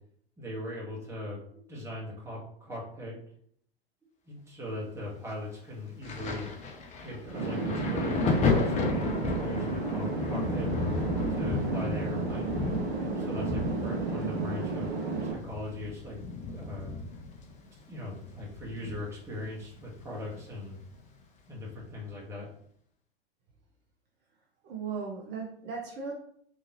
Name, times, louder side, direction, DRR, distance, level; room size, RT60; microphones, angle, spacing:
voice 1, 0.4-3.2 4.3-6.5 7.0-10.7 11.3-12.5 13.2-17.0 17.9-20.8 21.5-22.5, left 1 dB, 10° right, -5 dB, 1.5 m, -39 dB
Thunder, 6.0-19.4 19.6-21.0 21.8-22.0, left 4 dB, 20° left, 0.6 m, -33 dB
sound 1, 7.3-15.3, right 4 dB, 90° right, 0.9 m, -32 dB
voice 2, 24.6-26.1, right 5 dB, 35° right, -1 dB, 0.6 m, -37 dB
3.6 x 2.8 x 3.0 m, 0.64 s
hypercardioid pair, 95°, 32 cm